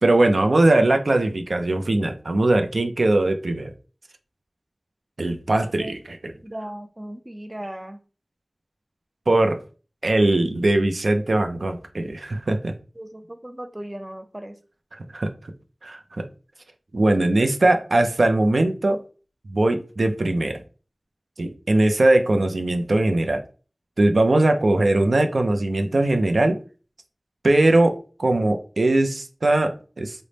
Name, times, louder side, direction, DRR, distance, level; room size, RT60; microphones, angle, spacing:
voice 1, 0.0-3.7 5.2-6.3 9.3-9.6 10.0-12.7 14.9-15.3 15.8-16.2 16.9-19.0 19.5-20.6 21.4-23.4 24.0-26.6 27.4-30.2, right 2 dB, 90° right, 6 dB, 0.4 m, -20 dB
voice 2, 6.4-8.0 13.0-14.6, right 1 dB, 25° right, 7 dB, 0.4 m, -37 dB
3.2 x 2.1 x 3.9 m, 0.36 s
wide cardioid pair, 50°, 0 cm